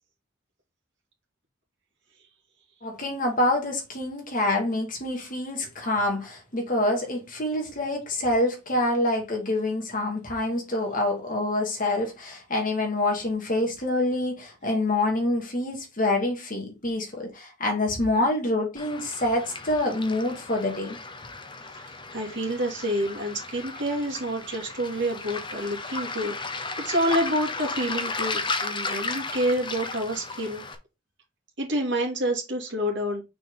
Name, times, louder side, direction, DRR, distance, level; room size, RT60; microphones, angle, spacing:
voice 1, 2.8-21.0, left 1 dB, 40° left, 2.1 m, -26 dB
Waves surf, 18.8-30.8, left 3 dB, 25° left, 0.7 m, -34 dB
voice 2, 21.8-30.6 31.6-33.2, equal, 60° right, 2.5 m, -28 dB
6.2 x 4.2 x 3.8 m
head